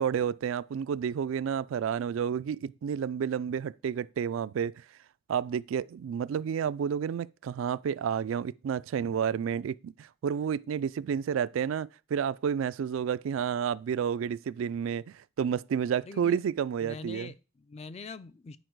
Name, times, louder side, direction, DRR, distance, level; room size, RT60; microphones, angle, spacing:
voice 1, 0.0-4.7 5.3-17.3, right 7 dB, 80° right, 0.3 m, -30 dB
voice 2, 16.0-16.4 16.8-18.6, left 4 dB, 30° left, 0.4 m, -44 dB
10.0 x 4.7 x 4.5 m
head